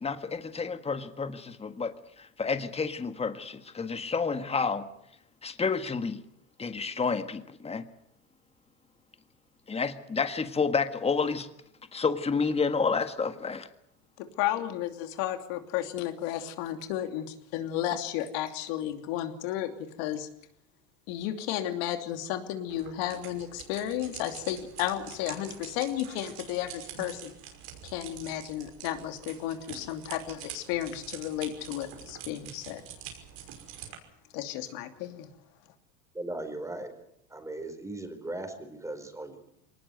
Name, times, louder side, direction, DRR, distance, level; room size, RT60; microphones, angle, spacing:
voice 1, 0.0-4.9 5.4-6.2 6.6-7.8 9.7-11.5 11.9-13.7, left 5 dB, 15° left, 10 dB, 1.7 m, -30 dB
voice 2, 14.2-19.7 20.0-20.3 21.1-27.3 27.8-32.8 34.3-35.3, left 12 dB, 65° left, 7 dB, 2.9 m, -33 dB
sound 1, 22.7-34.0, right 9 dB, 65° right, 5.8 m, -46 dB
voice 3, 36.1-36.9 37.3-39.5, right 2 dB, 10° right, 8 dB, 4.4 m, -38 dB
22.5 x 19.5 x 8.0 m, 0.77 s
supercardioid pair, 110°, 37 cm